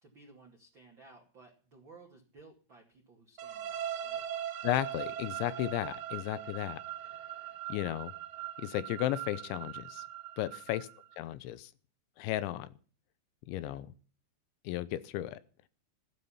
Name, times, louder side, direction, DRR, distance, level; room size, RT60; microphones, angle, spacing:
voice 1, 0.0-4.2 13.6-13.8, right 3 dB, 35° right, 0 dB, 2.0 m, -57 dB
sound 1, 3.4-11.2, right 10 dB, 80° right, 1.7 m, -41 dB
voice 2, 4.6-6.8 7.7-8.1 8.6-10.0 10.4-10.9 11.2-11.7 12.2-12.7 13.5-13.9 14.6-15.4, left 14 dB, 80° left, 15 dB, 3.1 m, -34 dB
15.0 x 12.5 x 5.7 m, 0.40 s
omnidirectional pair, 5.5 m